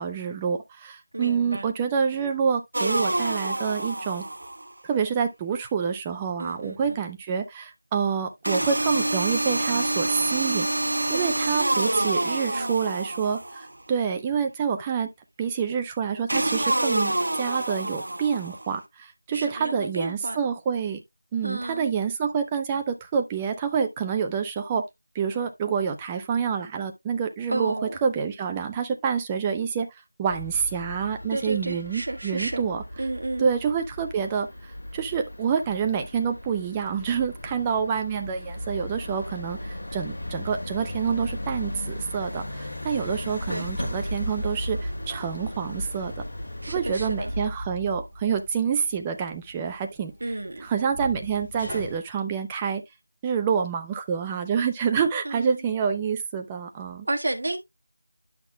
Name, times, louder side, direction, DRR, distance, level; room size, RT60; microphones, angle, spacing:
voice 1, 0.0-4.2 4.8-10.7 11.1-15.1 15.4-21.0 21.3-24.9 25.1-32.8 33.4-34.5 34.9-46.2 46.7-52.8 53.2-57.1, right 6 dB, 10° right, 0.6 m, -27 dB
voice 2, 1.1-1.7 6.4-6.8 11.2-12.2 12.5-12.8 19.3-20.4 21.4-21.9 27.5-27.9 31.3-32.6 33.0-33.5 43.5-43.7 46.6-47.3 50.2-50.7 55.2-55.5 57.0-57.6, right 2 dB, 50° right, 1.6 m, -32 dB
sound 1, 2.7-4.7 8.4-13.7 16.3-18.7, right 1 dB, 80° right, 1.0 m, -27 dB
sound 2, 30.3-47.5, left 1 dB, 45° left, 5.4 m, -37 dB
sound 3, 43.3-52.0, equal, 10° left, 2.2 m, -37 dB
11.0 x 5.9 x 2.2 m
figure-of-eight pair, 175°, 0 cm